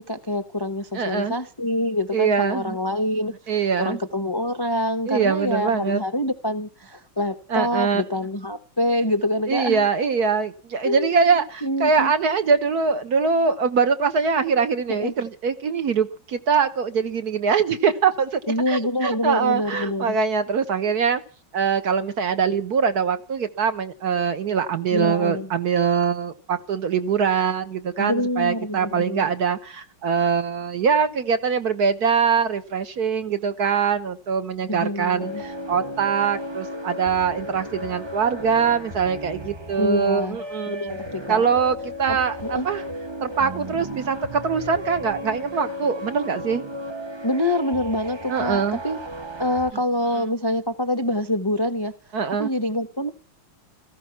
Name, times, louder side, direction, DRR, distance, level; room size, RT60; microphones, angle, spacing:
voice 1, 0.0-9.9 10.8-12.1 14.9-15.1 18.5-20.2 24.9-25.5 28.0-29.3 34.6-35.4 39.8-40.4 40.7-41.4 42.1-42.2 42.4-42.7 47.2-49.0 49.4-51.9 52.4-53.1, left 1 dB, 30° left, 8 dB, 0.4 m, -26 dB
voice 2, 0.9-1.3 2.1-2.8 3.5-4.0 5.1-6.0 7.5-8.0 9.5-18.4 18.7-21.2 21.5-40.8 41.3-42.8 43.2-46.6 48.3-48.8 50.2-50.3 52.1-52.5, right 6 dB, 55° right, 10 dB, 1.4 m, -23 dB
sound 1, 35.2-49.7, equal, 25° right, 0.6 m, -35 dB
17.0 x 15.0 x 5.8 m, 0.39 s
omnidirectional pair, 2.3 m